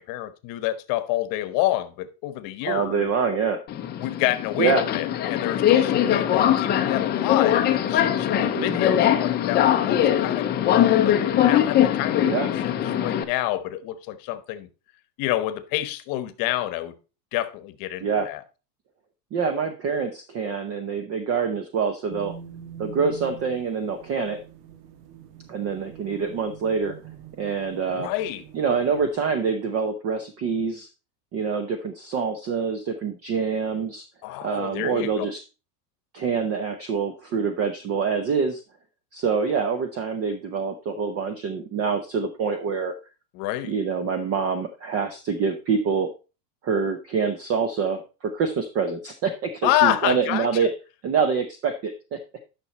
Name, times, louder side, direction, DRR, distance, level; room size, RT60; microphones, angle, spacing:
voice 1, 0.0-3.1 4.0-11.2 11.4-14.7 15.2-17.0 17.3-18.4 27.9-28.4 34.2-35.3 43.3-43.7 49.6-50.7, left 14 dB, 40° left, 1.0 m, -28 dB
voice 2, 2.6-3.6 4.6-4.8 8.4-8.8 12.2-12.5 18.0-18.3 19.3-22.3 22.8-24.4 25.5-27.0 27.4-28.1 28.5-30.9 31.3-34.1 34.4-35.4 36.1-38.6 39.1-42.9 43.7-46.1 46.6-50.7 51.0-52.2, right 5 dB, 30° right, 0.7 m, -26 dB
Subway metro underground, 3.7-13.2, left 10 dB, 20° left, 0.6 m, -21 dB
sound 1, 22.1-29.1, right 8 dB, 70° right, 1.6 m, -44 dB
10.5 x 5.9 x 4.1 m
supercardioid pair, 150°, 50 cm